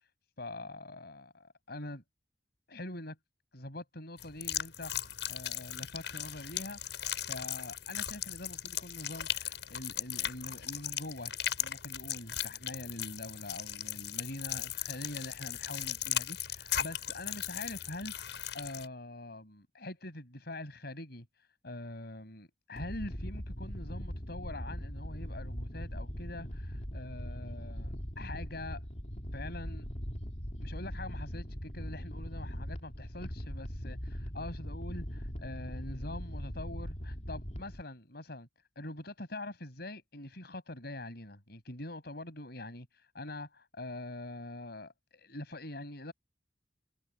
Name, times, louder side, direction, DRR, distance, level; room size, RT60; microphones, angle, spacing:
voice 1, 0.4-2.0 2.7-3.2 3.5-7.0 7.3-18.3 18.5-21.2 21.6-28.8 29.3-29.9 30.6-38.5 38.7-46.1, left 1 dB, 60° left, 6.6 m, -44 dB
sound 1, 4.2-18.9, left 11 dB, 75° left, 7.0 m, -37 dB
sound 2, 22.8-37.8, equal, 40° left, 3.2 m, -40 dB
head